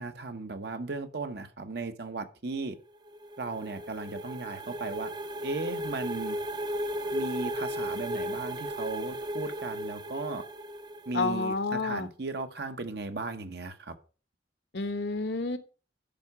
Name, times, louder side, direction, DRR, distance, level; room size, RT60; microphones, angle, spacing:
voice 1, 0.0-2.8 3.4-5.1 5.4-6.4 7.1-10.4 11.1-13.9, right 3 dB, 65° right, 8 dB, 1.0 m, -36 dB
sound 1, 2.9-11.6, equal, 25° right, 0.6 m, -36 dB
voice 2, 11.1-12.1 14.7-15.6, left 3 dB, 75° left, 10 dB, 1.0 m, -30 dB
10.5 x 4.8 x 5.3 m, 0.37 s
head